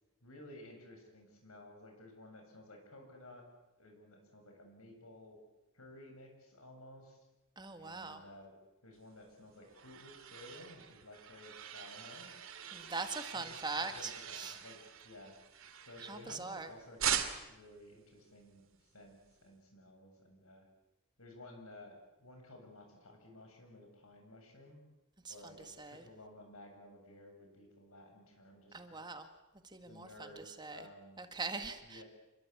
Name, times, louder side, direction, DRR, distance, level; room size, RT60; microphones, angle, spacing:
voice 1, 0.2-3.4 3.8-5.4 5.7-7.2 7.8-8.5 8.8-12.5 13.3-15.4 15.8-17.2 17.5-20.6 21.2-24.8 25.3-29.1 29.9-31.2 31.8-32.0, left 1 dB, 75° left, 4 dB, 8.0 m, -55 dB
voice 2, 7.6-8.2 12.7-14.5 16.0-16.7 25.2-25.3 25.8-26.0 28.7-29.2 29.7-30.8 31.2-32.0, right 3 dB, 20° right, 7 dB, 1.7 m, -42 dB
sound 1, 9.3-16.6 17.0-17.7, right 9 dB, 65° right, 2.6 m, -41 dB
27.5 x 22.5 x 8.5 m, 0.99 s
head